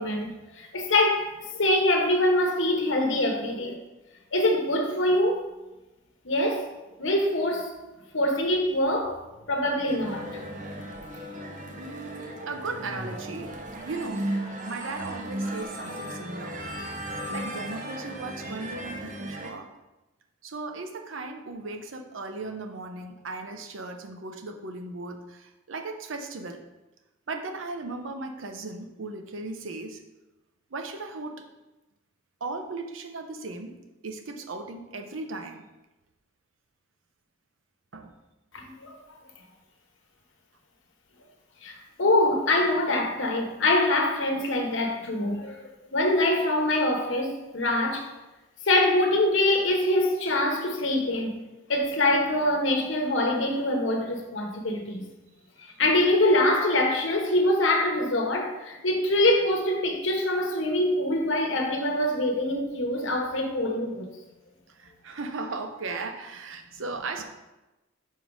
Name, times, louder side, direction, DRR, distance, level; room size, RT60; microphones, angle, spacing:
voice 1, 0.0-3.8 4.3-5.4 6.2-6.7 7.0-7.7 8.1-9.2 9.5-10.4 38.5-39.0 41.6-45.6 45.9-48.1 48.6-51.4 51.7-55.0 55.6-64.1, left 1 dB, 75° left, 2 dB, 1.1 m, -24 dB
sound 1, 9.9-19.5, right 1 dB, 40° right, 0.8 m, -36 dB
voice 2, 11.8-13.6 13.8-14.3 14.7-17.0 17.3-19.7 20.4-26.6 27.3-30.0 30.7-31.5 32.4-35.7 37.9-38.2 64.7-67.2, right 3 dB, 80° right, 5 dB, 0.7 m, -37 dB
5.2 x 4.5 x 4.7 m, 1.0 s
head